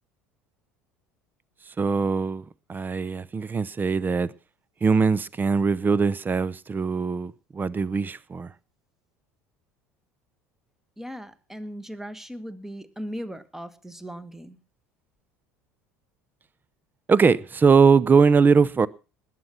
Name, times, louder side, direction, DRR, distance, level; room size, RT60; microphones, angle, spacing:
voice 1, 1.8-4.3 4.8-8.5 17.1-18.9, right 5 dB, 25° right, 0.7 m, -21 dB
voice 2, 11.0-14.6, equal, 5° right, 1.5 m, -38 dB
20.0 x 7.7 x 5.5 m
figure-of-eight pair, 65°, 8 cm